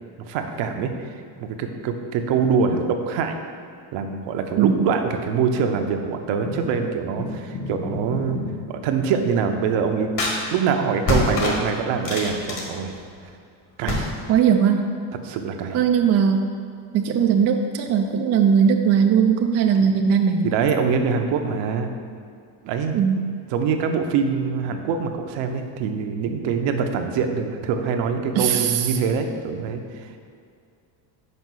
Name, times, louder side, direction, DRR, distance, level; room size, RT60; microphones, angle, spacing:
voice 1, 0.3-0.9 1.4-3.4 3.9-8.4 8.7-10.1 10.5-12.9 13.8-14.1 15.2-15.8 20.4-21.9 22.6-23.0 23.5-30.1, right 6 dB, 65° right, 5 dB, 0.9 m, -24 dB
sound 1, 6.4-6.8 7.2-8.7 10.2-10.3 11.0-13.3 13.9-14.3, left 2 dB, 45° left, 1.8 m, -27 dB
voice 2, 14.3-14.8 15.7-16.4 16.9-20.4 22.9-23.2 28.4-28.9, right 7 dB, 35° right, 4 dB, 0.4 m, -19 dB
5.5 x 5.1 x 6.3 m, 2.3 s
cardioid pair, 140°, 47 cm